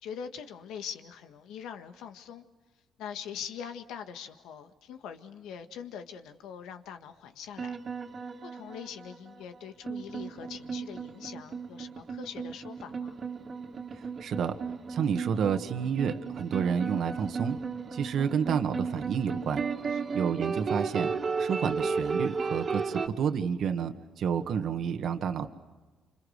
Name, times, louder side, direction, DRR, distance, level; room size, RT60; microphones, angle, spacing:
voice 1, 0.0-2.5 3.0-7.8 8.4-13.2 19.9-20.1, left 8 dB, 90° left, 7 dB, 1.7 m, -43 dB
sound 1, 7.6-23.1, right 5 dB, 45° right, 2.2 m, -34 dB
voice 2, 13.9-14.6 14.9-17.6 17.9-19.6 20.1-21.1 21.4-25.5, right 7 dB, 70° right, 7 dB, 1.7 m, -30 dB
28.5 x 26.5 x 6.6 m, 1.3 s
cardioid pair, 90°, 0 cm